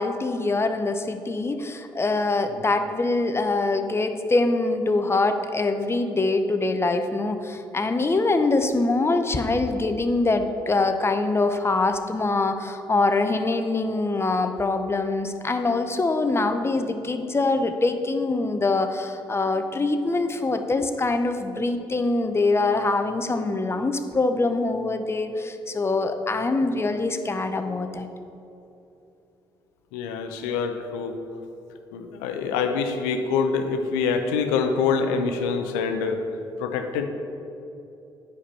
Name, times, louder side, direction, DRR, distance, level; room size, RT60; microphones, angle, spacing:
voice 1, 0.0-28.1, left 3 dB, 25° left, 7 dB, 0.7 m, -24 dB
voice 2, 29.9-31.2 31.9-36.2 36.6-37.0, left 5 dB, 90° left, 7 dB, 0.6 m, -25 dB
9.8 x 5.0 x 4.3 m, 2.8 s
supercardioid pair, 60°, 10 cm